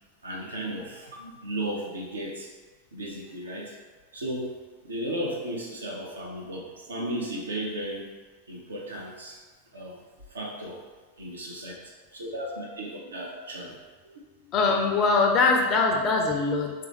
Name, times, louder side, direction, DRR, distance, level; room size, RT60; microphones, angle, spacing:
voice 1, 0.2-2.5 2.9-3.8 4.1-8.1 8.5-9.4 9.7-10.0 10.3-10.8 11.2-11.7 12.1-13.8 14.0-14.2, right 1 dB, 70° right, -2 dB, 0.7 m, -35 dB
voice 2, 14.5-16.7, left 4 dB, 35° left, 1 dB, 0.4 m, -22 dB
3.4 x 2.5 x 3.0 m, 1.3 s
figure-of-eight pair, 90°, 0 cm